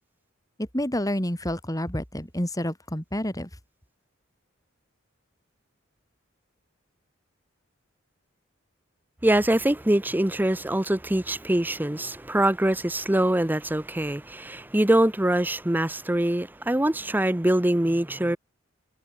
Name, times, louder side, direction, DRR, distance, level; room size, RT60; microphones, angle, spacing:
voice 1, 0.7-3.5, left 1 dB, 20° left, 5.8 m, -29 dB
voice 2, 9.2-18.4, right 1 dB, 10° right, 0.7 m, -23 dB
head